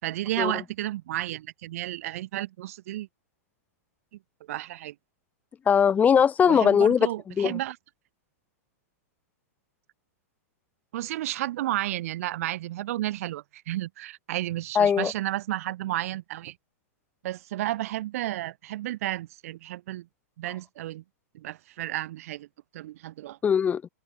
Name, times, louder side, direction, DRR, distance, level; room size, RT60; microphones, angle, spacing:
voice 1, 0.0-3.1 4.5-4.9 6.5-7.8 10.9-16.5 17.2-20.1 20.4-21.0 21.3-22.5 22.7-23.4, right 15 dB, 60° right, 5.0 m, -32 dB
voice 2, 5.7-7.1 7.4-7.6 14.7-15.1 23.4-23.8, left 7 dB, 20° left, 4.9 m, -20 dB
open air
hypercardioid pair, 135°, 9 cm